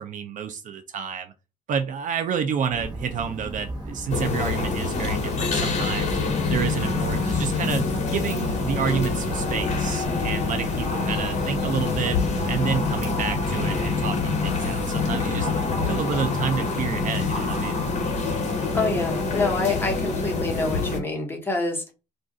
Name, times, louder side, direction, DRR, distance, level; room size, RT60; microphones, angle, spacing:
voice 1, 0.0-1.3 1.7-6.2 6.5-7.9 8.1-12.2 12.5-15.5 15.8-17.8, right 7 dB, 50° right, 8 dB, 0.5 m, -29 dB
sound 1, 2.7-14.0, right 1 dB, 25° right, 1.2 m, -36 dB
sound 2, 4.1-21.0, left 4 dB, 45° left, 1.0 m, -26 dB
voice 2, 18.7-21.9, left 3 dB, 15° left, 0 dB, 1.1 m, -27 dB
2.5 x 2.4 x 3.7 m, 0.30 s
cardioid pair, 110°, 17 cm